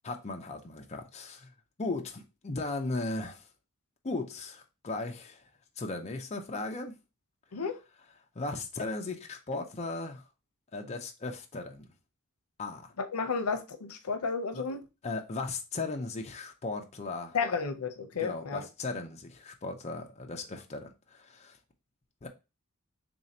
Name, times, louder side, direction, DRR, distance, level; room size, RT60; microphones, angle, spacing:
voice 1, 0.0-1.5 1.8-3.5 4.0-5.4 5.8-7.0 8.4-10.2 10.7-11.9 12.6-12.9 14.5-14.6 15.0-17.4 18.2-21.6 22.2-22.3, left 3 dB, 30° left, 0.5 m, -37 dB
voice 2, 7.5-7.8 13.0-14.8 17.3-18.7, left 5 dB, 85° left, 0.6 m, -32 dB
3.2 x 2.7 x 4.1 m
head